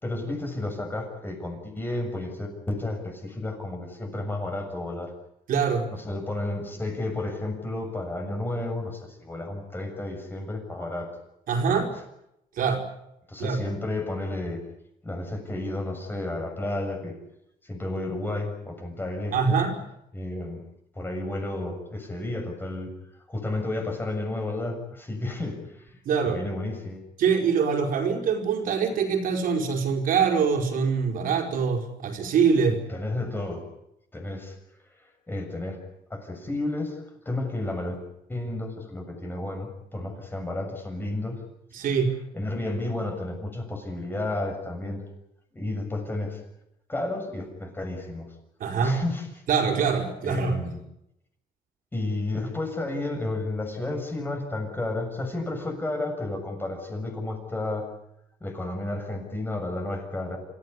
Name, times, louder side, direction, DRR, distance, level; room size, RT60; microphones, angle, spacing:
voice 1, 0.0-5.1 5.9-11.2 11.7-11.9 13.3-14.6 15.0-17.2 17.6-19.6 20.1-20.7 20.9-22.9 23.3-26.0 26.2-27.1 32.7-33.6 34.1-34.6 34.9-35.8 36.1-38.0 38.3-41.4 42.3-45.1 45.5-46.4 46.9-48.3 48.8-49.3 50.2-50.8 51.9-57.9 58.4-60.4, left 2 dB, 15° left, 3 dB, 6.9 m, -32 dB
voice 2, 5.5-5.8 11.5-11.9 12.6-12.8 13.4-13.6 19.3-19.7 26.0-26.4 27.2-32.8 41.7-42.1 48.6-49.0 49.5-50.5, right 6 dB, 65° right, 2 dB, 4.9 m, -24 dB
27.0 x 15.5 x 9.8 m, 0.82 s
cardioid pair, 135°, 15 cm